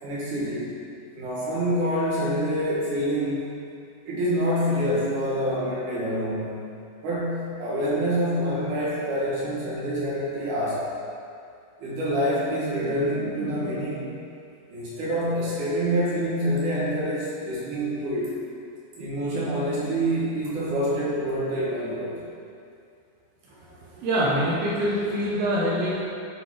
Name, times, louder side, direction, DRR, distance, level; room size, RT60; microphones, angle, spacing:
voice 1, 0.0-0.7 1.2-3.5 4.1-6.6 7.0-10.9 11.8-14.2 14.7-18.3 19.0-22.2, equal, 65° right, -8 dB, 2.8 m, -26 dB
voice 2, 23.5-26.0, equal, 85° right, -6 dB, 2.7 m, -25 dB
7.6 x 3.9 x 4.8 m, 2.4 s
omnidirectional pair, 4.2 m